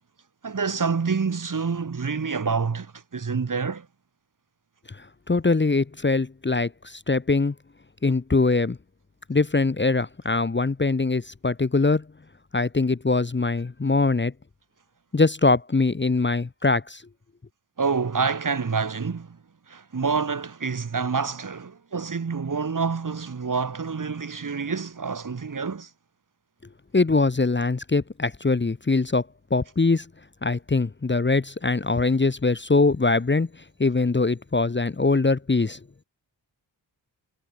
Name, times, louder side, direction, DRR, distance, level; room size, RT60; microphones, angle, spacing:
voice 1, 0.4-2.9 3.1-3.8 17.8-19.4 19.7-25.9, right 5 dB, 45° right, 1.4 m, -27 dB
voice 2, 5.3-7.5 8.0-8.8 9.3-12.0 12.5-14.3 15.1-17.0 26.9-29.2 29.5-30.0 30.4-33.5 33.8-35.8, left 3 dB, 25° left, 0.9 m, -22 dB
cardioid pair, 50°, 45 cm